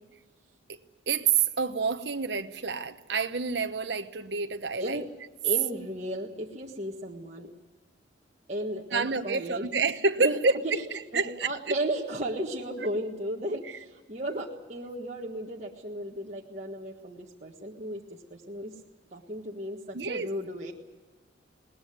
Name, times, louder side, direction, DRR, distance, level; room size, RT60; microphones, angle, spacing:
voice 1, 1.1-5.0 8.9-10.8 11.1-11.5 13.6-13.8 19.9-20.3, right 5 dB, 60° right, 1.0 m, -28 dB
voice 2, 5.4-7.5 8.5-9.7 10.2-10.4 10.9-18.7 19.1-20.7, right 1 dB, 35° right, 1.6 m, -35 dB
20.5 x 19.0 x 9.4 m
head